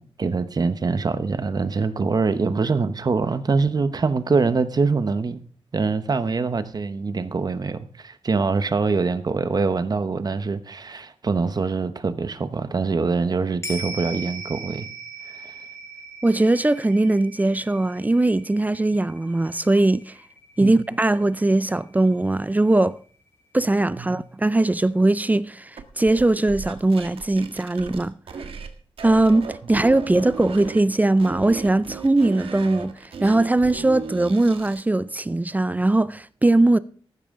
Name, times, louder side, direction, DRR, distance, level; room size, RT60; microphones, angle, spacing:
voice 1, 0.2-5.4 5.7-14.9 15.2-15.6 20.6-20.9 24.0-24.2, right 4 dB, 45° right, 1.0 m, -24 dB
sound 1, 13.6-22.2 22.5-22.6, right 2 dB, 30° left, 2.4 m, -40 dB
voice 2, 16.2-20.1 20.6-23.0 23.5-28.1 29.0-36.8, right 2 dB, 15° right, 0.4 m, -20 dB
sound 2, 25.8-28.7 29.0-30.8 31.2-34.9, right 5 dB, 75° right, 1.6 m, -36 dB
14.5 x 12.5 x 3.8 m
wide cardioid pair, 100°, 10 cm